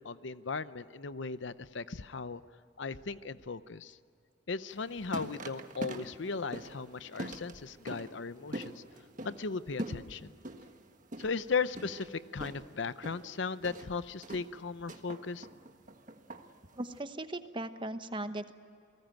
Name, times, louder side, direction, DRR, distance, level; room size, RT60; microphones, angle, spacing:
voice 1, 0.0-2.4 2.8-4.0 4.5-8.8 9.2-10.3 11.2-15.5, left 4 dB, 65° left, 14 dB, 0.7 m, -37 dB
sound 1, 4.7-17.0, right 1 dB, 40° right, 1.4 m, -44 dB
voice 2, 16.7-18.5, right 1 dB, 25° right, 10 dB, 1.0 m, -38 dB
29.0 x 19.5 x 9.0 m, 2.6 s
head